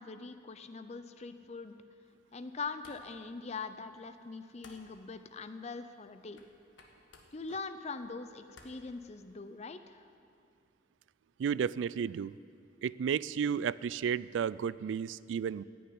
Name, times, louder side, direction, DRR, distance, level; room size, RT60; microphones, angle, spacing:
voice 1, 0.0-1.7 2.3-6.4 7.3-10.0, left 4 dB, 35° left, 10 dB, 0.6 m, -42 dB
sound 1, 2.0-9.6, left 2 dB, 80° left, 1.6 m, -63 dB
voice 2, 11.4-12.3 12.8-15.6, right 7 dB, 75° right, 20 dB, 0.3 m, -32 dB
15.0 x 6.8 x 9.6 m, 2.3 s
head